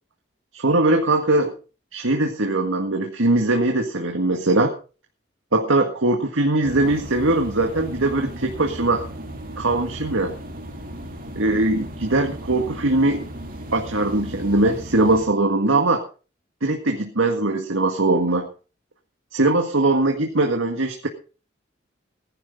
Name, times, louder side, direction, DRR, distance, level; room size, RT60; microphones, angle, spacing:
voice 1, 0.5-1.5 1.9-4.7 5.5-9.0 9.6-10.3 11.4-13.2 13.7-16.0 16.6-18.5 19.3-21.1, right 2 dB, 85° right, 3 dB, 1.8 m, -21 dB
sound 1, 6.6-15.2, right 1 dB, 45° right, 2.7 m, -36 dB
19.0 x 11.0 x 3.8 m, 0.36 s
head